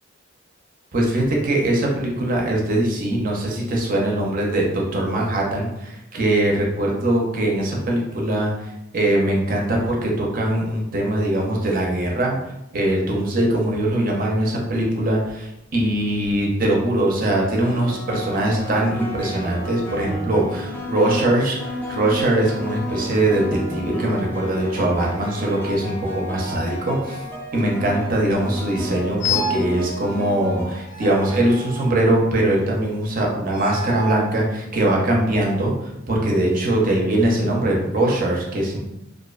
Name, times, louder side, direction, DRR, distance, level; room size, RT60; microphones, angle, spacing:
voice 1, 0.9-12.4 12.7-23.4 23.7-27.2 27.5-38.8, right 1 dB, 45° right, -1 dB, 0.5 m, -21 dB
sound 1, 16.0-16.4 17.6-32.5, equal, 10° left, 0.4 m, -33 dB
sound 2, 29.2-29.7 30.9-32.1 33.4-34.3, left 2 dB, 70° left, 0.9 m, -28 dB
2.5 x 2.1 x 2.3 m, 0.88 s
head